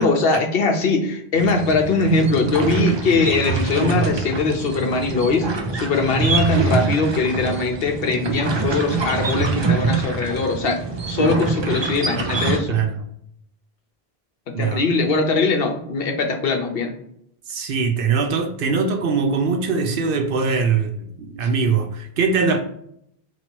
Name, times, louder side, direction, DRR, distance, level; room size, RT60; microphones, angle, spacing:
voice 1, 0.0-5.5 5.7-10.8 11.1-12.8 14.6-16.9, left 3 dB, 70° left, 4 dB, 0.9 m, -21 dB
sound 1, 1.4-12.6, right 4 dB, 40° right, 0.4 m, -24 dB
voice 2, 17.5-22.6, right 5 dB, 65° right, 6 dB, 0.7 m, -22 dB
3.0 x 2.8 x 4.4 m, 0.71 s
omnidirectional pair, 1.1 m